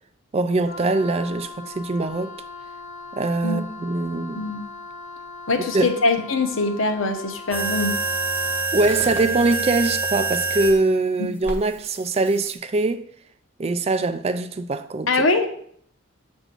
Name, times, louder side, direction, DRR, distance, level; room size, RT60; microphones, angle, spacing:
voice 1, 0.3-2.4 3.1-4.4 5.7-5.9 8.7-13.1 13.6-15.1, right 3 dB, 30° right, 0.3 m, -22 dB
Wind instrument woodwind instrument, 0.6-8.8, left 3 dB, 35° left, 0.6 m, -40 dB
voice 2, 5.5-8.0 11.2-11.3 15.1-15.5, left 3 dB, 75° left, 0.9 m, -22 dB
sound 1, 7.5-10.8 11.5-12.5, right 3 dB, 10° right, 0.7 m, -26 dB
7.9 x 2.6 x 5.9 m
head